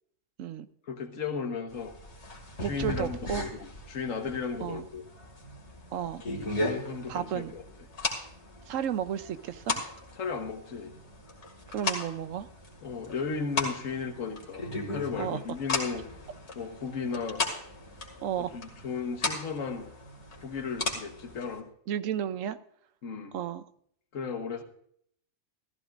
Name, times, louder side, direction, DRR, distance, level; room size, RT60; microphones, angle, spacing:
voice 1, 0.9-1.9 2.6-5.0 6.6-7.6 10.2-10.9 12.8-16.1 16.5-17.4 18.4-19.9 20.4-21.7 23.0-23.4 24.1-24.6, left 5 dB, 80° left, 7 dB, 1.6 m, -35 dB
sound 1, 1.7-21.6, left 2 dB, 55° left, 2.6 m, -37 dB
voice 2, 2.6-3.5 4.6-4.8 5.9-6.2 7.1-7.5 8.7-9.8 11.7-12.5 15.2-15.4 18.2-18.5 21.9-22.6 23.3-23.6, right 9 dB, 80° right, 12 dB, 1.0 m, -32 dB
14.5 x 14.5 x 2.5 m, 0.66 s
omnidirectional pair, 1.4 m